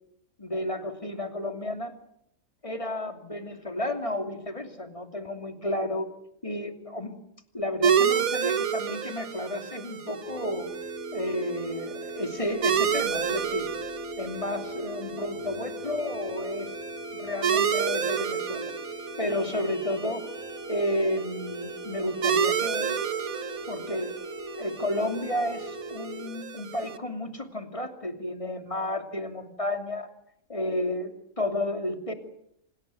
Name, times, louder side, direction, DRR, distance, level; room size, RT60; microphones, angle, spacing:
voice 1, 0.4-1.9 2.6-6.1 6.4-7.1 7.5-10.7 11.1-13.7 14.2-16.7 17.1-18.7 19.2-20.2 20.7-23.0 23.7-24.1 24.5-30.1 30.5-32.1, left 1 dB, 25° left, 6 dB, 2.9 m, -32 dB
sound 1, 7.8-27.0, right 7 dB, 80° right, 1.7 m, -31 dB
sound 2, 10.2-26.3, right 1 dB, 5° right, 5.3 m, -39 dB
26.5 x 19.0 x 9.3 m, 0.75 s
omnidirectional pair, 1.5 m